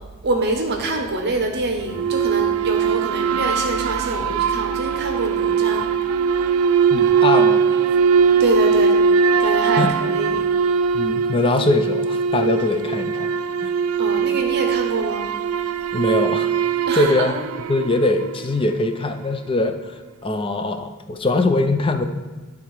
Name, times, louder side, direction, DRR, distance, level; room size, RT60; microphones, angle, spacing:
voice 1, 0.2-5.9 8.4-9.0 9.4-10.5 14.0-15.3 16.9-17.3, right 2 dB, 50° right, 2 dB, 0.8 m, -25 dB
sound 1, 1.9-18.5, right 6 dB, 70° right, 0.3 m, -20 dB
voice 2, 6.9-7.6 9.8-9.9 10.9-13.7 15.9-16.5 16.9-17.3 17.7-22.1, left 2 dB, 25° left, 8 dB, 0.4 m, -22 dB
9.9 x 3.5 x 4.6 m, 1.3 s
head